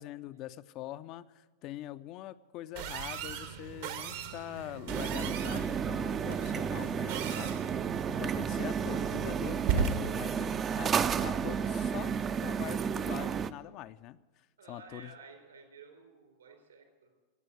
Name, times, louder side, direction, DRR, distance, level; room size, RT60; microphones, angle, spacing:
voice 1, 0.0-12.2 12.4-15.1, left 14 dB, 40° left, 12 dB, 0.5 m, -44 dB
sound 1, 2.8-11.9, right 6 dB, 55° right, 1.1 m, -38 dB
sound 2, 4.9-13.5, right 7 dB, 25° right, 0.5 m, -32 dB
voice 2, 14.6-17.1, right 4 dB, 70° right, 3 dB, 4.0 m, -53 dB
18.0 x 8.3 x 9.2 m, 1.2 s
figure-of-eight pair, 90°, 0 cm